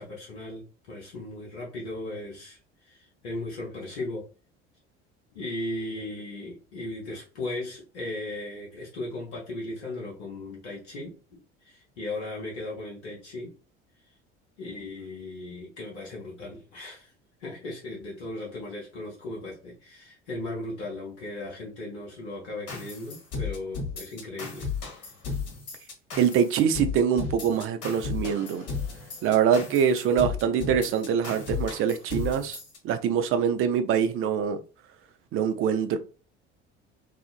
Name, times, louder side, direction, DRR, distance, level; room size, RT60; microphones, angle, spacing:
voice 1, 0.0-4.3 5.3-11.1 11.6-13.5 14.6-17.1 17.4-24.7 25.0-25.1, left 2 dB, 80° left, 0.9 m, -37 dB
sound 1, 22.7-32.8, left 4 dB, 45° left, 1.3 m, -34 dB
voice 2, 26.2-28.7 29.2-32.6 32.8-34.6 35.3-36.0, right 8 dB, 40° right, 0.5 m, -24 dB
2.7 x 2.4 x 2.4 m
figure-of-eight pair, 60°, 34 cm